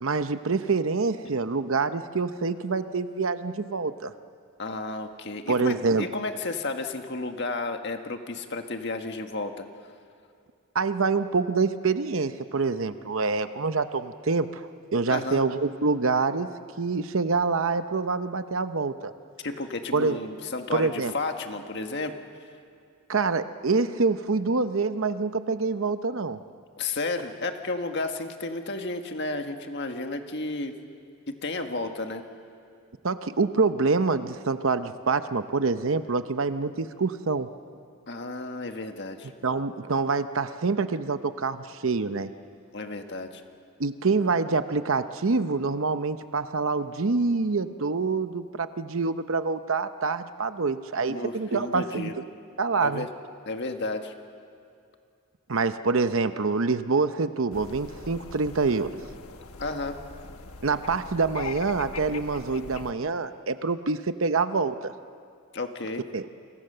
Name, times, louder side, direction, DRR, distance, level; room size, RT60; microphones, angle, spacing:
voice 1, 0.0-4.1 5.5-6.1 10.7-16.5 16.8-19.1 19.9-20.2 20.7-21.1 23.1-26.4 33.0-37.5 39.4-42.3 43.8-52.1 52.6-53.1 55.5-58.9 60.6-64.9 66.1-66.3, right 4 dB, 65° right, 10 dB, 0.8 m, -26 dB
voice 2, 4.6-9.6 15.1-15.4 19.4-22.2 26.8-30.8 31.3-32.2 38.1-39.3 42.7-43.4 51.1-52.1 52.8-53.1 53.4-54.1 59.6-60.0 65.5-66.0, left 3 dB, 55° left, 5 dB, 1.6 m, -32 dB
sound 1, 57.5-62.9, left 4 dB, 90° left, 1.3 m, -41 dB
29.0 x 25.5 x 6.8 m, 2.3 s
head